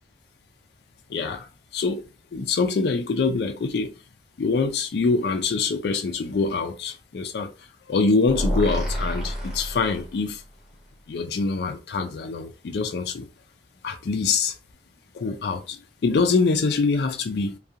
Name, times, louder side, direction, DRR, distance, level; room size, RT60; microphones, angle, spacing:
voice 1, 1.1-1.5 1.7-2.0 2.3-3.9 4.4-7.5 7.9-10.4 11.1-13.3 13.8-14.5 15.1-17.6, left 4 dB, 70° left, 0.4 m, -24 dB
sound 1, 8.3-10.4, equal, ahead, 0.8 m, -28 dB
2.4 x 2.3 x 2.7 m
head